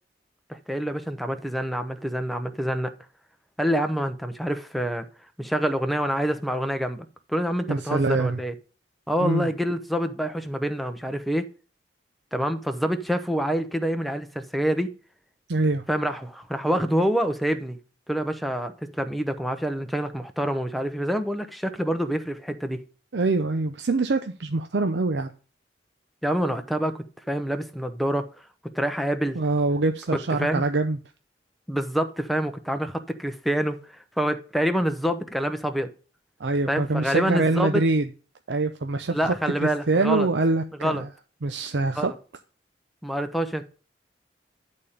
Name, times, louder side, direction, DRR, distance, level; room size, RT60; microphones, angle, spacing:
voice 1, 0.5-2.9 3.6-5.1 5.4-8.5 9.1-11.5 12.3-14.9 15.9-17.8 18.1-22.8 26.2-28.3 28.7-29.4 30.1-30.6 31.7-33.8 34.2-35.9 36.7-37.8 39.1-40.3 40.8-41.0 42.0-42.1 43.0-43.6, equal, ahead, 0.7 m, -26 dB
voice 2, 7.7-8.4 9.2-9.5 15.5-15.8 23.1-25.3 29.4-31.0 36.4-38.1 38.5-41.0 41.4-42.1, right 3 dB, 75° right, 0.6 m, -24 dB
10.5 x 4.3 x 5.0 m
head